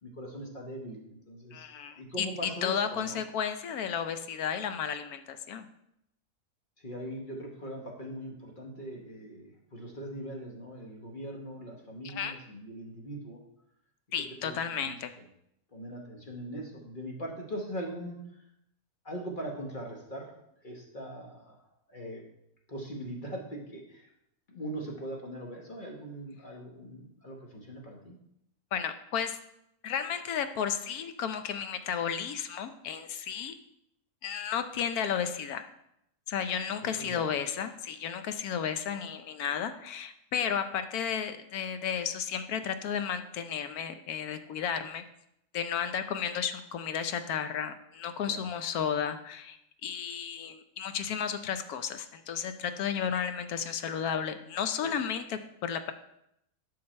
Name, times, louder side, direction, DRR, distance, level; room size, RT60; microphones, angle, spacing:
voice 1, 0.0-3.2 6.8-13.4 14.4-15.3 15.7-18.4 19.0-20.3 20.6-21.6 21.9-22.3 22.7-24.1 24.5-28.2 36.8-37.3 48.3-48.4, right 1 dB, 35° left, -1 dB, 1.2 m, -41 dB
voice 2, 1.5-5.7 12.0-12.3 14.1-15.1 28.7-29.4 29.8-33.5 34.2-35.7 36.3-45.0 45.5-49.6 49.8-55.9, left 8 dB, 90° left, 9 dB, 1.2 m, -33 dB
7.7 x 5.9 x 4.3 m, 0.78 s
omnidirectional pair, 1.5 m